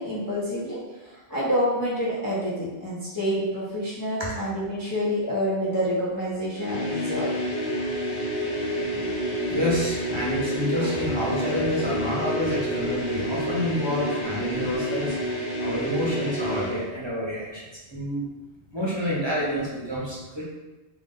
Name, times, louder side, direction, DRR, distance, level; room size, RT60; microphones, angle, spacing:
voice 1, 0.0-7.3 10.8-10.9, equal, 25° left, -8 dB, 0.5 m, -28 dB
sound 1, 6.5-16.9, equal, 50° left, 1.0 m, -29 dB
voice 2, 8.6-9.2 9.5-15.3 15.6-17.6 17.9-18.3 18.7-20.4, equal, 25° right, -6 dB, 0.8 m, -28 dB
3.5 x 2.5 x 3.7 m, 1.1 s
omnidirectional pair, 1.1 m